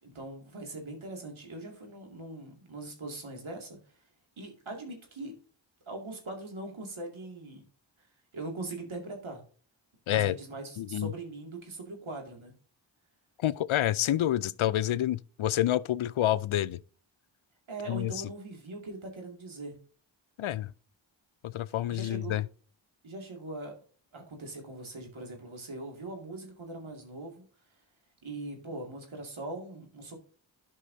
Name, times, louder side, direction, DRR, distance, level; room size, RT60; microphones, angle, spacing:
voice 1, 0.0-3.8 4.4-5.3 5.9-7.6 8.3-9.4 10.1-12.5 17.7-19.8 21.9-22.4 23.0-23.7 24.1-27.4 28.2-30.2, right 2 dB, 80° right, 2.4 m, -41 dB
voice 2, 10.8-11.1 13.4-16.8 17.9-18.1 20.4-20.7 21.4-22.5, left 13 dB, 85° left, 0.5 m, -28 dB
11.5 x 5.4 x 2.7 m
cardioid pair, 45°, 47 cm